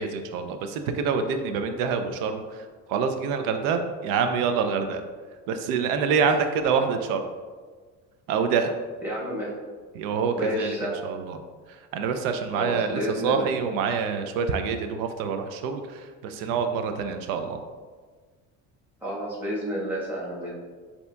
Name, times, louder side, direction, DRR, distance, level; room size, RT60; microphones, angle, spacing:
voice 1, 0.0-5.0 5.5-7.2 8.3-8.7 9.9-10.8 11.0-11.4 11.9-17.6, right 6 dB, 90° right, 7 dB, 0.5 m, -26 dB
voice 2, 9.0-9.6 10.3-11.0 12.5-13.5 19.0-20.5, equal, 5° right, -6 dB, 1.1 m, -30 dB
6.7 x 2.8 x 2.2 m, 1.5 s
cardioid pair, 130°, 34 cm